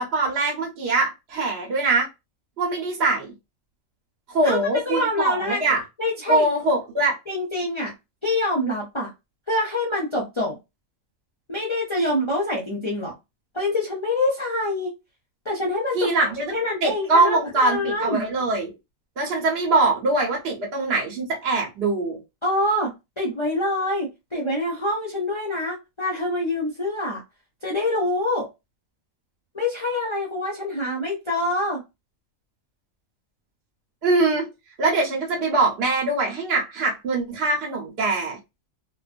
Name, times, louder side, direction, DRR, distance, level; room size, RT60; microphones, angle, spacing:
voice 1, 0.0-2.1 2.6-3.3 4.3-5.8 6.3-7.2 15.9-16.5 16.8-18.7 19.2-22.2 34.0-34.5 34.8-38.4, right 3 dB, 55° right, 1.1 m, -22 dB
voice 2, 4.4-5.6 6.0-6.5 7.3-7.9 8.2-9.1 9.5-10.5 11.5-13.1 13.5-14.9 15.4-16.1 16.5-18.2 22.4-27.2 27.6-28.5 29.5-31.8, left 1 dB, 30° left, 0.6 m, -25 dB
2.5 x 2.4 x 2.4 m
omnidirectional pair, 1.4 m